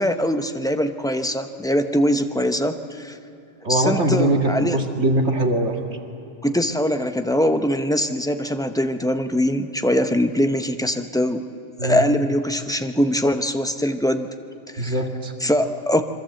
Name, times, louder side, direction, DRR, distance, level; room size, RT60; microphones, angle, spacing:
voice 1, 0.0-3.2 3.7-4.8 6.4-11.4 11.8-14.3 14.7-14.9 15.4-16.0, equal, 5° left, 7 dB, 0.8 m, -22 dB
voice 2, 3.6-5.8 11.8-12.0 14.8-15.3, right 1 dB, 70° right, 2 dB, 2.4 m, -21 dB
27.0 x 23.5 x 7.9 m, 2.7 s
omnidirectional pair, 1.2 m